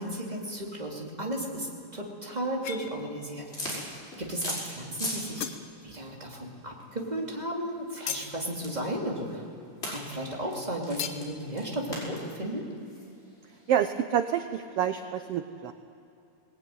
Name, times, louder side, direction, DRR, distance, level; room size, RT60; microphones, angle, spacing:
voice 1, 0.0-5.6 5.8-9.4 9.8-12.7, right 1 dB, 15° right, -2 dB, 2.7 m, -34 dB
sound 1, 2.6-3.3 3.7-4.2 4.7-4.8 5.1-6.2 6.4-10.2 10.5-10.6 11.0-11.4, left 8 dB, 70° left, 1.2 m, -40 dB
sound 2, 3.4-5.3 5.6-13.8, left 1 dB, 20° left, 5.6 m, -40 dB
voice 2, 13.7-15.7, right 9 dB, 80° right, 9 dB, 1.3 m, -28 dB
21.0 x 19.5 x 9.4 m, 2.5 s
omnidirectional pair, 3.6 m